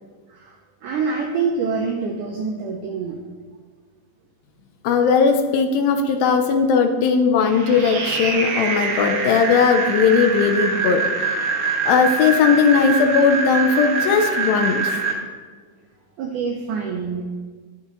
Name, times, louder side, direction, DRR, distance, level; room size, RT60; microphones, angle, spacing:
voice 1, 0.8-3.2 16.2-17.2, right 5 dB, 80° right, 1 dB, 1.8 m, -25 dB
voice 2, 4.8-11.4 11.9-15.0, left 5 dB, 75° left, 5 dB, 2.3 m, -18 dB
sound 1, 7.4-15.1, right 4 dB, 65° right, 3.1 m, -24 dB
19.0 x 6.5 x 3.1 m, 1.5 s
omnidirectional pair, 4.5 m